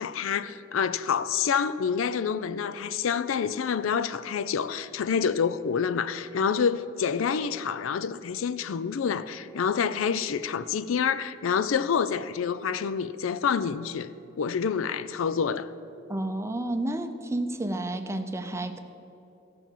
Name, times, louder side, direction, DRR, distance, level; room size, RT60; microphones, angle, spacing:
voice 1, 0.0-15.7, left 6 dB, 85° left, 0.4 m, -27 dB
voice 2, 16.1-18.8, right 1 dB, 15° right, 0.6 m, -31 dB
15.0 x 5.8 x 7.3 m
head